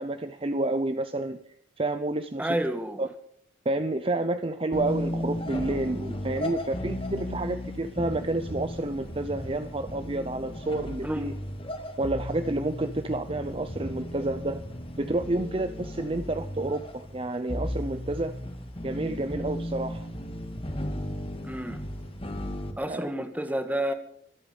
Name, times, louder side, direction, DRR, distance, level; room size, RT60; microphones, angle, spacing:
voice 1, 0.0-1.4 1.8-2.6 3.0-3.1 3.7-11.3 12.0-14.6 15.0-18.3 18.8-20.1 22.9-23.1, right 2 dB, 30° right, 9 dB, 0.6 m, -29 dB
voice 2, 2.4-3.0 11.0-11.3 21.4-21.8 22.8-23.9, right 1 dB, 10° right, 7 dB, 1.6 m, -29 dB
sound 1, 4.7-22.7, left 1 dB, 30° left, 2.0 m, -35 dB
25.0 x 8.6 x 5.4 m, 0.69 s
head